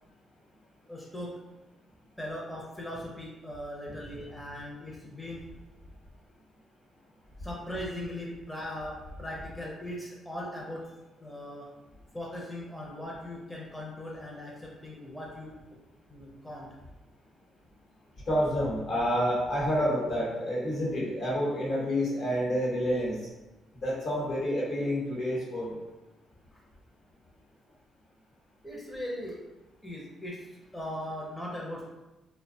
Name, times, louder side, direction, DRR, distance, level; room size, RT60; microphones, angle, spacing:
voice 1, 0.9-1.3 2.2-5.4 7.4-8.9 9.2-10.8 11.2-11.7 12.1-15.6 16.1-16.7 28.6-29.4 29.8-31.8, left 1 dB, 5° left, -4 dB, 0.5 m, -39 dB
voice 2, 18.3-23.2 23.7-25.8, equal, 60° left, -5 dB, 1.0 m, -28 dB
2.6 x 2.1 x 2.6 m, 1.0 s
cardioid pair, 90°, 0 cm